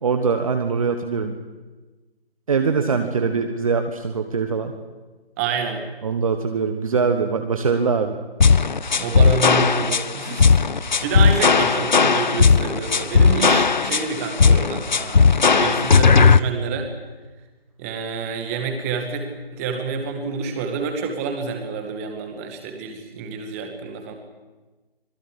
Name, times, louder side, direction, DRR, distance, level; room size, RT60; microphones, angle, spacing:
voice 1, 0.0-1.3 2.5-4.7 6.0-8.2, right 5 dB, 35° right, 6 dB, 1.4 m, -22 dB
voice 2, 5.4-5.8 8.9-10.6 11.0-16.9 17.8-19.2 19.5-24.2, right 5 dB, 15° right, 5 dB, 2.1 m, -28 dB
sound 1, 8.4-16.4, left 5 dB, 50° left, 0.7 m, -16 dB
25.5 x 17.5 x 8.7 m, 1.2 s
figure-of-eight pair, 150°, 30 cm